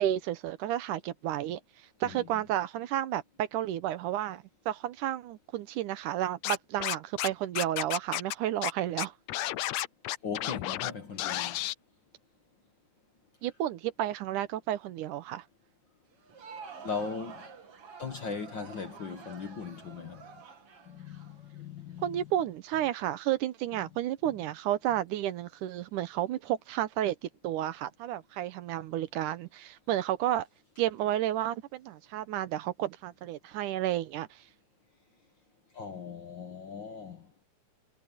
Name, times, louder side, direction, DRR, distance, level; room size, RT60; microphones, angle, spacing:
voice 1, 0.0-1.6 2.0-9.1 13.4-15.4 22.0-27.2 27.4-30.5 30.8-34.3, right 12 dB, 80° right, 2.5 m, -31 dB
voice 2, 2.0-2.4 10.2-11.6 16.8-17.4 18.0-20.3 20.9-22.3 23.8-23.9 24.2-24.4 24.9-25.0 35.7-37.3, left 5 dB, 50° left, 1.5 m, -39 dB
Scratching (performance technique), 6.4-7.3 7.6-8.3 8.6-8.7 9.0-10.9 11.2-11.7, left 15 dB, 80° left, 1.6 m, -32 dB
Crowd, 16.1-22.0, right 5 dB, 45° right, 3.3 m, -49 dB
omnidirectional pair, 3.6 m